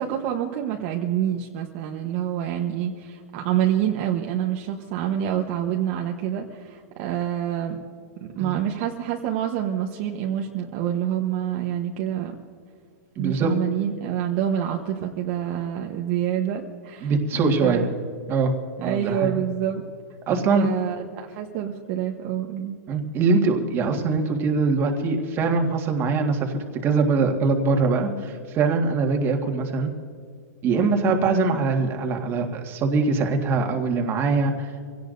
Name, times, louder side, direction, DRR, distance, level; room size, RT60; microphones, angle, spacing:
voice 1, 0.0-7.8 8.2-12.3 13.2-17.1 17.6-17.9 18.8-19.8 20.5-22.8, right 10 dB, 45° right, 1 dB, 1.1 m, -27 dB
voice 2, 8.2-8.6 13.1-13.5 17.0-17.8 18.3-18.5 18.8-19.3 20.3-20.7 22.9-29.9 30.6-34.7, right 4 dB, 25° right, 3 dB, 1.7 m, -23 dB
25.5 x 17.5 x 2.6 m, 2.2 s
hypercardioid pair, 150°, 9 cm